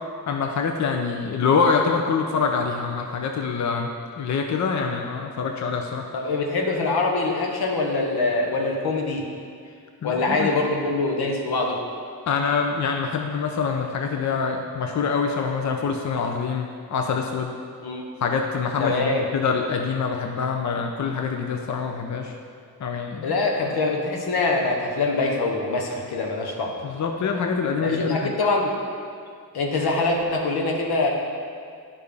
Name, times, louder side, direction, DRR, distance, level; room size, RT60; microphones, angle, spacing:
voice 1, 0.3-3.9 4.2-6.0 10.0-10.5 12.3-17.5 18.2-22.3 22.8-23.3 26.8-28.3, left 5 dB, 50° left, 3 dB, 0.6 m, -25 dB
voice 2, 6.1-9.3 10.0-11.8 17.8-18.1 18.8-19.3 23.2-26.8 27.8-28.7 29.5-31.1, left 3 dB, 80° left, 1 dB, 1.1 m, -24 dB
9.2 x 5.4 x 3.4 m, 2.2 s
cardioid pair, 65°, 38 cm